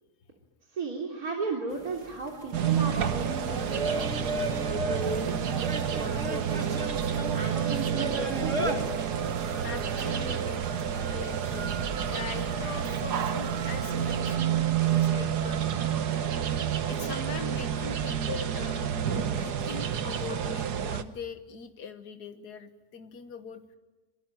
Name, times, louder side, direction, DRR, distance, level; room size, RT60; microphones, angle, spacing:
voice 1, 0.7-4.3 4.6-5.4 6.0-7.0 7.3-8.9, right 3 dB, 65° right, 0 dB, 3.7 m, -35 dB
sound 1, 1.7-14.2, right 1 dB, 50° right, 3.2 m, -38 dB
sound 2, 2.5-21.0, right 8 dB, 80° right, 1.8 m, -29 dB
voice 2, 9.6-15.8 16.9-23.6, left 5 dB, 85° left, 8 dB, 2.0 m, -41 dB
26.5 x 23.0 x 9.0 m, 1.2 s
omnidirectional pair, 1.7 m